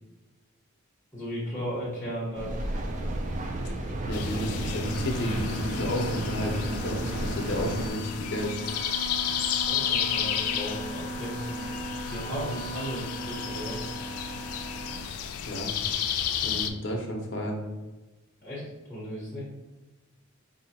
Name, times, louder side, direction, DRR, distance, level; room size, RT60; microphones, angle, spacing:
voice 1, 1.1-2.6 9.6-11.8 12.1-13.9 18.4-18.6 18.9-19.4, equal, 10° left, -7 dB, 1.1 m, -35 dB
Mechanical fan, 2.3-7.9, right 2 dB, 35° right, 0.3 m, -32 dB
sound 1, 4.1-16.7, left 8 dB, 85° left, 0.3 m, -32 dB
voice 2, 4.1-8.6 15.4-15.7 16.4-17.6, left 1 dB, 55° left, 0 dB, 0.7 m, -32 dB
sound 2, 4.8-15.0, equal, 80° right, 0.7 m, -39 dB
4.7 x 2.7 x 2.8 m, 1.1 s
head